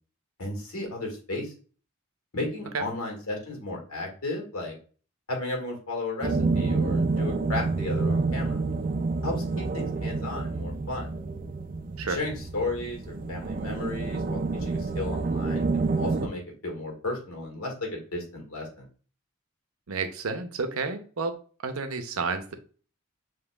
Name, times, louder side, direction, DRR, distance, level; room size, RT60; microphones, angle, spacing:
voice 1, 0.4-1.5 2.3-4.8 5.3-8.6 9.2-11.1 12.1-18.9, left 2 dB, 80° left, 0 dB, 1.8 m, -34 dB
sound 1, 6.2-16.3, right 3 dB, 40° right, 0.4 m, -28 dB
voice 2, 19.9-21.4 21.6-22.5, right 4 dB, 85° right, 8 dB, 0.7 m, -30 dB
7.0 x 3.0 x 2.3 m, 0.40 s
head